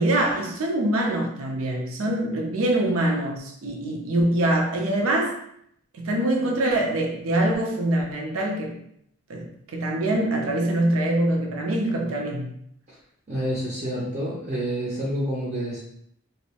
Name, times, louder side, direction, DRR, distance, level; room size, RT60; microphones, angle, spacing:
voice 1, 0.0-5.4 5.9-8.8 9.3-12.5, right 1 dB, 80° right, 0.5 m, -24 dB
voice 2, 13.3-15.8, equal, 35° right, 0.5 m, -28 dB
2.6 x 2.0 x 2.8 m
head